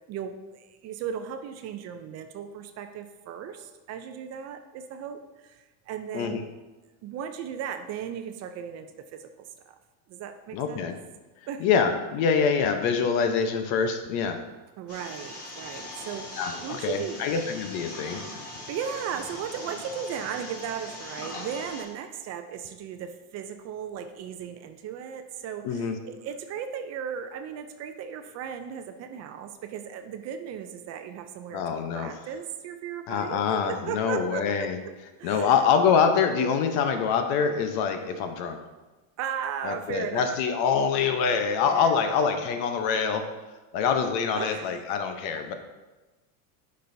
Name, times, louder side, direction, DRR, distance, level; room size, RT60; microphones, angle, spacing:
voice 1, 0.1-6.4 7.0-9.8 10.1-10.8 11.5-11.6 14.8-17.2 18.7-31.6 31.9-34.7 35.2-35.6 39.2-40.4 41.6-42.1 44.3-44.7, right 8 dB, 40° right, 8 dB, 0.5 m, -36 dB
voice 2, 10.5-10.9 11.6-14.4 16.4-18.4 25.6-26.0 31.5-32.1 33.1-34.8 35.2-38.6 39.6-43.3 43.7-45.5, left 6 dB, 60° left, 7 dB, 0.9 m, -25 dB
sound 1, 14.9-21.8, left 1 dB, 35° left, 2.2 m, -40 dB
9.9 x 5.4 x 2.7 m, 1.2 s
supercardioid pair, 140°, 41 cm